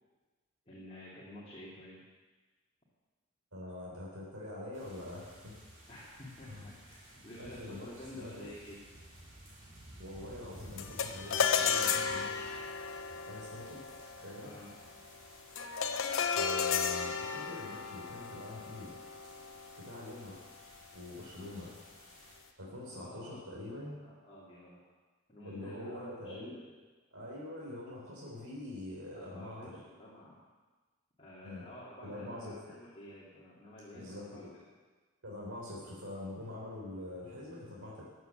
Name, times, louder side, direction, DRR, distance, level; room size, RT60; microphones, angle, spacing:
voice 1, 0.7-2.0 5.9-8.8 14.4-14.7 22.9-24.8 25.3-26.7 29.1-30.3 31.2-34.6, left 1 dB, 25° left, -7 dB, 2.6 m, -50 dB
voice 2, 3.5-5.6 6.5-6.7 7.4-7.9 8.1-8.5 10.0-12.6 13.3-13.8 14.2-14.5 16.3-18.9 19.7-20.4 20.9-21.7 22.6-23.9 25.4-26.6 27.1-29.8 31.4-31.6 32.0-32.5 33.9-34.5 35.2-38.0, left 1 dB, 80° right, -4 dB, 4.1 m, -44 dB
sound 1, 4.7-22.4, right 1 dB, 40° right, 4.1 m, -56 dB
sound 2, 10.8-20.3, left 6 dB, 70° left, 0.9 m, -34 dB
14.0 x 8.0 x 7.9 m, 1.3 s
head